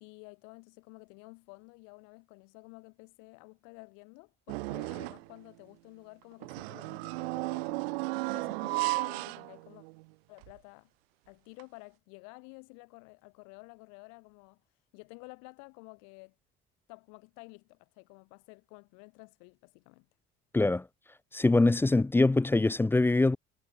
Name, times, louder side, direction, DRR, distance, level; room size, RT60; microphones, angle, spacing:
voice 1, 0.0-7.8 8.2-9.8 10.3-10.9 11.3-14.6 14.9-16.3 16.9-20.1, left 37 dB, 80° left, 2.7 m, -52 dB
sound 1, 4.5-5.3 6.4-10.0 10.4-10.5 11.6-11.7, right 25 dB, 85° right, 2.2 m, -34 dB
voice 2, 20.5-20.9 21.3-23.4, left 2 dB, 10° left, 0.3 m, -23 dB
hypercardioid pair, 70°, 30 cm